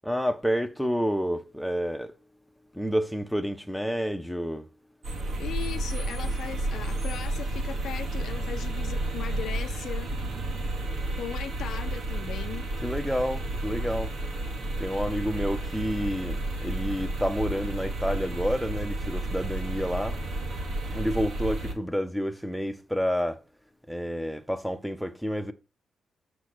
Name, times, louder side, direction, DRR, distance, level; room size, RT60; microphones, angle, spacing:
voice 1, 0.0-2.1 2.7-4.7 12.8-14.1 14.8-20.2 20.9-23.4 23.9-25.5, equal, ahead, 0.5 m, -29 dB
sound 1, 5.0-21.7, right 2 dB, 65° right, 1.3 m, -31 dB
voice 2, 5.4-10.1 11.2-12.6, left 9 dB, 75° left, 0.5 m, -38 dB
7.2 x 3.1 x 5.9 m
wide cardioid pair, 165°, 0 cm